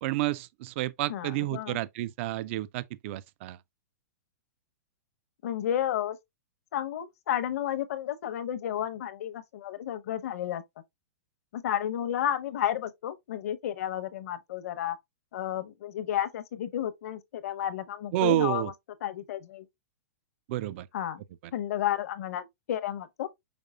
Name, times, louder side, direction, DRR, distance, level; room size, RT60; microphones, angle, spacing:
voice 1, 0.0-3.6 18.1-18.7 20.5-20.9, right 15 dB, 45° right, 0.3 m, -30 dB
voice 2, 1.1-1.8 5.4-6.2 6.7-10.6 11.5-15.0 15.3-18.7 19.0-19.6 20.9-21.2 21.5-23.3, left 11 dB, 60° left, 0.7 m, -32 dB
5.2 x 4.6 x 2.2 m
hypercardioid pair, 140°, 9 cm